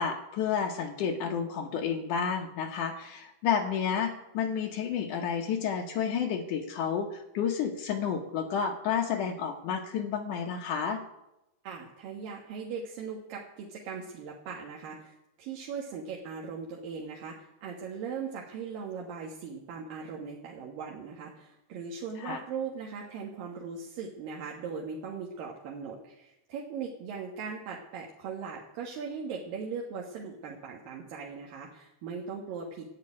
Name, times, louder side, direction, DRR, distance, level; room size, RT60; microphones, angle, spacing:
voice 1, 0.0-11.0 22.2-22.4, left 7 dB, 85° left, 2 dB, 1.7 m, -31 dB
voice 2, 11.6-32.8, right 5 dB, 60° right, -1 dB, 2.7 m, -39 dB
13.5 x 7.7 x 9.7 m, 0.90 s
omnidirectional pair, 5.2 m